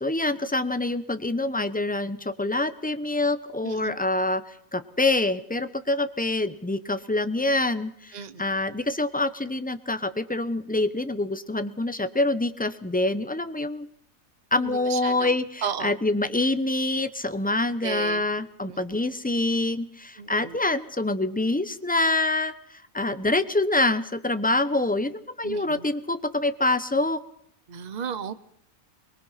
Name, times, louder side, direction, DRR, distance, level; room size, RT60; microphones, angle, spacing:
voice 1, 0.0-13.9 14.5-22.5 22.9-27.2, left 2 dB, 10° left, 12 dB, 0.7 m, -26 dB
voice 2, 3.6-4.0 8.1-8.4 14.9-15.3 15.6-15.9 17.8-18.2 18.7-18.8 20.2-20.6 25.4-25.8 27.7-28.3, right 7 dB, 35° right, 13 dB, 1.0 m, -33 dB
23.0 x 21.5 x 5.8 m, 0.68 s
omnidirectional pair, 1.4 m